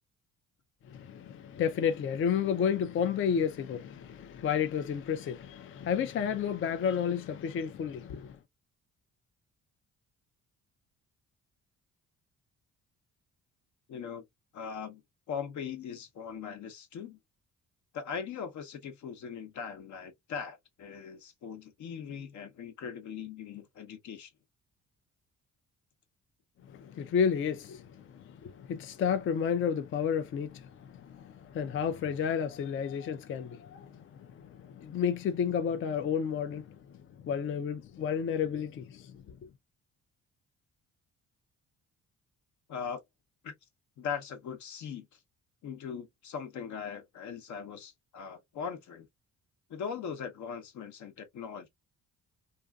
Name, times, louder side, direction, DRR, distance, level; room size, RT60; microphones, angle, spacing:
voice 1, 0.9-8.4 26.7-36.8 37.2-39.4, left 7 dB, 45° left, 0.4 m, -31 dB
voice 2, 13.9-14.2 14.5-15.0 15.3-17.2 17.9-24.3 42.7-43.0 43.4-43.5 44.0-45.1 45.6-49.1 49.7-51.7, left 7 dB, 70° left, 0.8 m, -40 dB
2.5 x 2.4 x 2.2 m
cardioid pair, 90°, 30 cm